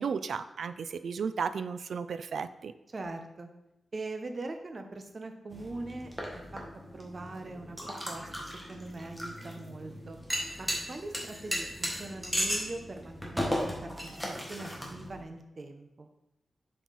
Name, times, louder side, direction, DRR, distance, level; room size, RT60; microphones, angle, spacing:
voice 1, 0.0-2.7, right 6 dB, 80° right, 12 dB, 0.4 m, -34 dB
voice 2, 2.9-3.5 3.9-6.6 6.9-10.2 10.6-16.1, right 2 dB, 40° right, 5 dB, 0.8 m, -42 dB
sound 1, 5.5-15.2, equal, 5° right, 1.4 m, -36 dB
7.4 x 4.6 x 4.1 m, 0.92 s
wide cardioid pair, 120°, 0 cm